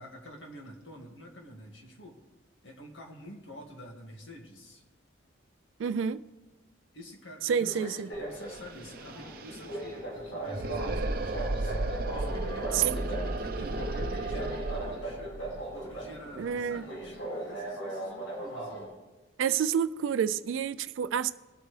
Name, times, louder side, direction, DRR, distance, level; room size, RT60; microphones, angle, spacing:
voice 1, 0.0-2.2 2.6-4.8 6.9-11.8 12.1-15.4 15.7-18.9, left 1 dB, 70° left, 2.0 m, -48 dB
voice 2, 5.8-6.2 7.4-8.1 12.7-13.0 16.4-16.8 19.4-21.3, right 8 dB, 75° right, 0.3 m, -28 dB
sound 1, 7.6-18.8, right 1 dB, 90° left, 4.5 m, -39 dB
sound 2, 8.1-8.2 8.4-17.2, right 2 dB, 50° right, 0.7 m, -35 dB
21.5 x 8.1 x 3.3 m
head